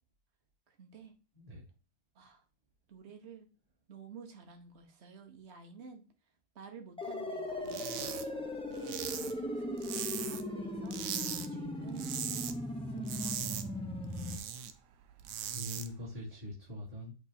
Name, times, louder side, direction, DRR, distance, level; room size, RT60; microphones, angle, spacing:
voice 1, 0.7-1.1 2.1-2.5 2.9-3.5 3.9-6.0 6.5-8.5 9.0-13.4, right 6 dB, 40° right, 4 dB, 1.3 m, -51 dB
sound 1, 7.0-14.4, left 1 dB, 10° left, 0.3 m, -38 dB
sound 2, 7.6-8.2 8.5-10.5 10.9-11.5 11.8-12.5 12.9-14.7 15.1-15.9, right 9 dB, 70° right, 1.2 m, -39 dB
voice 2, 15.4-17.1, equal, 20° right, -11 dB, 3.1 m, -43 dB
7.9 x 3.4 x 4.0 m, 0.33 s
omnidirectional pair, 2.0 m